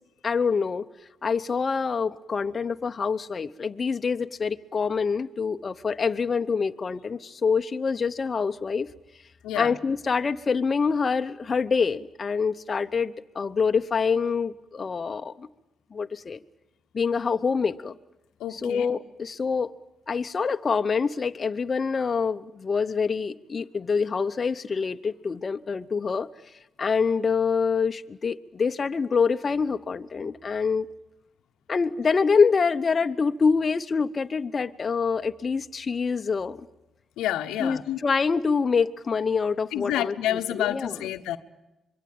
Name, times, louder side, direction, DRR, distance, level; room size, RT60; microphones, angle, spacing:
voice 1, 0.2-0.9 1.2-8.9 9.5-15.5 15.9-16.4 16.9-18.0 18.5-19.7 20.1-26.5 26.8-30.9 31.7-36.6 37.6-41.1, left 5 dB, 35° left, 8 dB, 0.9 m, -26 dB
voice 2, 18.4-18.9 37.2-38.0 39.7-41.4, left 12 dB, 90° left, 8 dB, 1.0 m, -29 dB
25.5 x 22.5 x 8.7 m, 0.95 s
cardioid pair, 90°, 0 cm